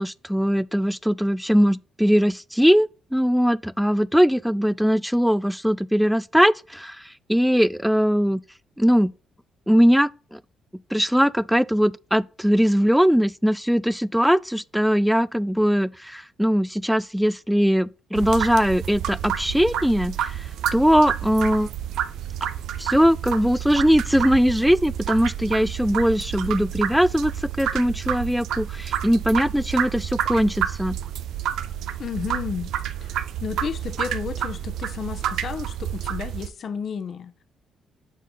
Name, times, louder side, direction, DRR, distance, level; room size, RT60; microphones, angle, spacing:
voice 1, 0.0-8.4 8.8-9.1 9.7-10.4 10.9-21.7 22.8-31.0, equal, ahead, 0.3 m, -20 dB
sound 1, 18.2-36.5, right 10 dB, 80° right, 0.6 m, -29 dB
voice 2, 32.0-32.7 33.0-37.3, left 6 dB, 55° left, 0.9 m, -32 dB
7.5 x 4.1 x 3.9 m
cardioid pair, 90°, 0 cm